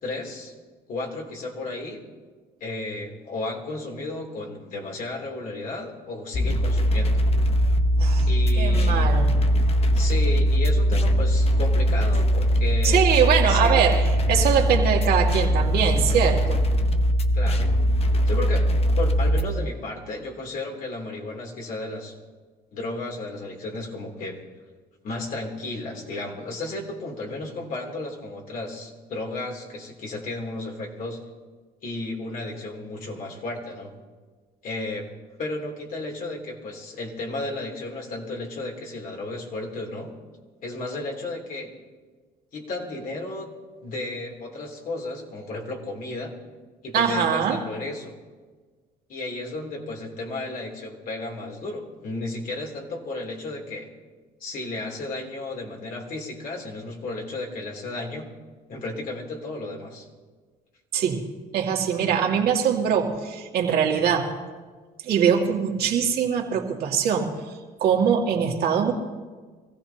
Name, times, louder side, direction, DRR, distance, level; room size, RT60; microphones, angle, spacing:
voice 1, 0.0-0.5 0.9-2.0 2.6-7.2 8.3-9.1 9.9-13.1 13.5-13.8 14.7-14.8 17.3-17.7 18.3-18.7 19.0-22.1 22.7-24.4 25.0-31.2 31.8-33.9 34.6-35.1 35.4-40.2 40.6-41.7 42.5-43.5 43.8-46.3 46.8-48.1 49.1-53.9 54.4-58.3 58.7-60.1, left 2 dB, 55° left, 0 dB, 3.2 m, -33 dB
sound 1, 6.3-19.4, equal, 35° left, 1.0 m, -21 dB
voice 2, 8.6-9.3 12.8-16.6 46.9-47.6 60.9-61.3 61.5-64.3 65.0-67.5 67.8-68.9, right 7 dB, 65° right, 0 dB, 2.2 m, -22 dB
24.5 x 15.5 x 2.9 m, 1.4 s
cardioid pair, 110°, 17 cm